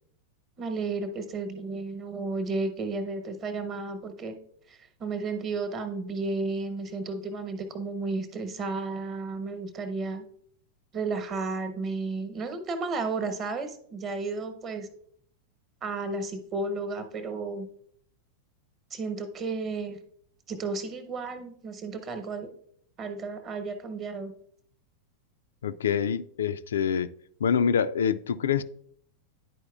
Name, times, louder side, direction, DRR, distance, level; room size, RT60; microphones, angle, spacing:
voice 1, 0.6-4.4 4.7-10.2 10.9-14.9 15.8-17.7 18.9-20.0 20.5-22.5 23.0-24.3, right 3 dB, 30° right, 1.0 m, -33 dB
voice 2, 25.6-27.1 27.4-28.6, left 7 dB, 65° left, 0.3 m, -26 dB
10.5 x 4.7 x 2.3 m
figure-of-eight pair, 90°, 0 cm